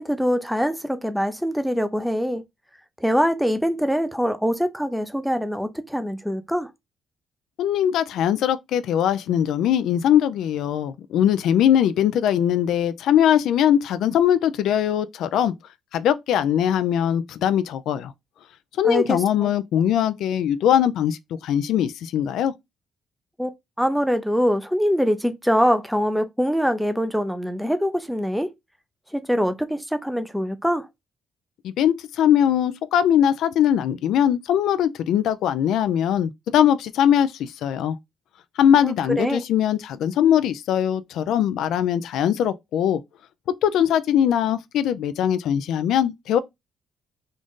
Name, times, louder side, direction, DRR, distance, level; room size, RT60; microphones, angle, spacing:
voice 1, 0.0-2.4 3.0-6.7 18.8-19.5 23.4-23.5 23.8-28.5 29.1-30.9 38.8-39.4, equal, ahead, 0.5 m, -23 dB
voice 2, 7.6-15.5 15.9-18.1 18.8-22.5 31.6-38.0 38.6-43.0 43.6-46.4, left 10 dB, 80° left, 0.3 m, -21 dB
3.8 x 2.5 x 3.6 m
cardioid pair, 90°, 0 cm